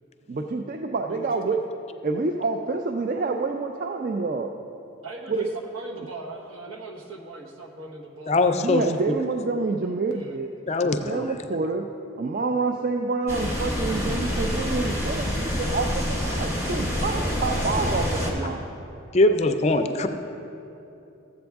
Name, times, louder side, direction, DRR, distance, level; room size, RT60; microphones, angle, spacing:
voice 1, 0.3-1.6 2.0-4.5 5.3-5.5 8.6-10.5 11.0-11.9 12.2-18.7, right 3 dB, 40° right, 4 dB, 0.3 m, -27 dB
voice 2, 1.0-1.4 5.0-8.4 10.0-10.4, right 3 dB, 70° right, 0 dB, 1.2 m, -39 dB
voice 3, 8.3-8.8 10.7-11.3 19.1-20.1, left 2 dB, 30° left, 7 dB, 0.4 m, -21 dB
sound 1, 13.3-18.3, left 1 dB, 10° right, 1.3 m, -27 dB
13.5 x 7.8 x 3.5 m, 2.8 s
head